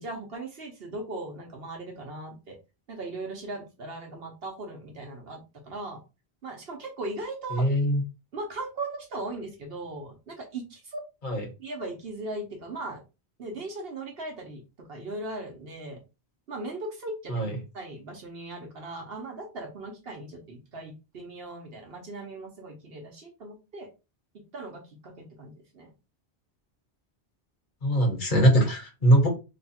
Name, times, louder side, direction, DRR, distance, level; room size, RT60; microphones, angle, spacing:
voice 1, 0.0-2.6 2.9-6.0 6.4-7.6 8.3-11.0 11.6-13.0 13.4-16.0 16.5-17.5 17.7-23.9 24.5-25.9, right 2 dB, 65° right, 2 dB, 1.1 m, -38 dB
voice 2, 7.5-8.0 11.2-11.4 17.3-17.5 27.8-29.3, right 1 dB, 50° left, 1 dB, 1.4 m, -22 dB
3.2 x 2.3 x 4.2 m, 0.28 s
omnidirectional pair, 1.1 m